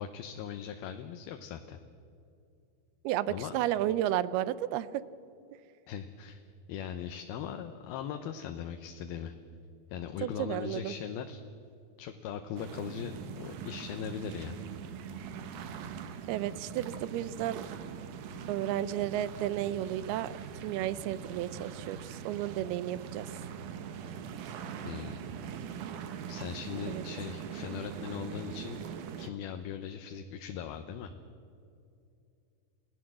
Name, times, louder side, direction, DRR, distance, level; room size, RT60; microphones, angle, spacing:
voice 1, 0.0-1.8 3.3-3.5 5.9-6.4 6.7-9.3 9.9-11.4 12.0-14.6 24.8-25.2 26.3-28.8 29.2-31.1, left 8 dB, 80° left, 6 dB, 2.7 m, -39 dB
voice 2, 3.0-5.0 10.2-10.9 16.3-17.6 18.5-20.3 20.6-23.3 26.9-27.0, right 12 dB, 80° right, 17 dB, 2.6 m, -32 dB
sound 1, 12.6-29.3, right 7 dB, 65° right, 2.3 m, -42 dB
28.5 x 17.5 x 7.6 m, 2.6 s
omnidirectional pair, 4.5 m